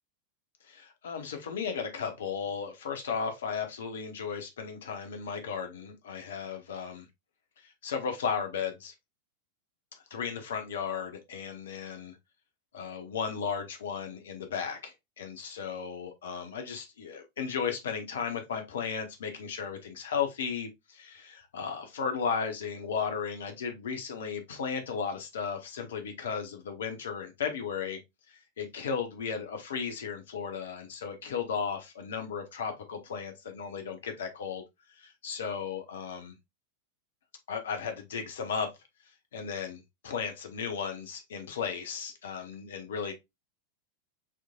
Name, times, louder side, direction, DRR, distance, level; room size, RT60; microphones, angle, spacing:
voice 1, 0.7-7.1 7.6-8.9 10.1-12.2 12.7-28.0 28.3-34.6 35.0-36.3 37.5-38.7 39.3-43.1, left 6 dB, 60° left, 1.1 m, -35 dB
6.2 x 3.2 x 2.4 m
figure-of-eight pair, 90°, 0 cm